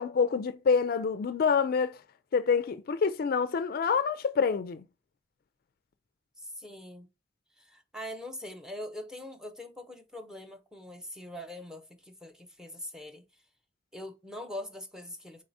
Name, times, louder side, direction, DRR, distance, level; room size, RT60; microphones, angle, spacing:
voice 1, 0.0-2.0 2.3-4.8, left 5 dB, 55° left, 0.3 m, -27 dB
voice 2, 6.4-7.1 7.6-13.2 13.9-15.4, left 1 dB, 5° right, 0.7 m, -42 dB
4.7 x 3.9 x 2.6 m
head